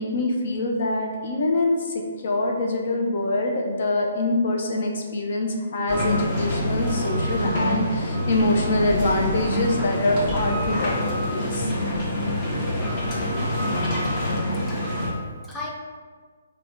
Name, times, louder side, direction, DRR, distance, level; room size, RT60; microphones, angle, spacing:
voice 1, 0.0-11.7, left 2 dB, 55° left, 1 dB, 0.6 m, -25 dB
sound 1, 5.9-15.1, left 1 dB, 40° left, 1.5 m, -25 dB
voice 2, 14.5-15.7, left 2 dB, 10° left, -5 dB, 0.7 m, -38 dB
4.1 x 2.3 x 4.4 m, 1.5 s
figure-of-eight pair, 140°, 0 cm